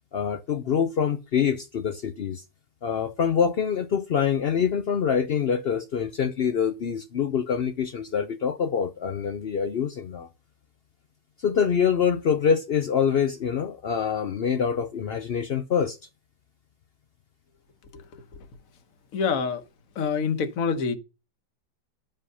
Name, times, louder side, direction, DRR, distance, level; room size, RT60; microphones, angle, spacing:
voice 1, 0.1-2.4 2.8-10.3 11.4-16.0, left 7 dB, 80° left, 0.5 m, -25 dB
voice 2, 17.9-18.5 19.1-19.6 19.9-20.9, left 5 dB, 55° left, 1.4 m, -27 dB
11.5 x 5.4 x 5.4 m
omnidirectional pair, 1.8 m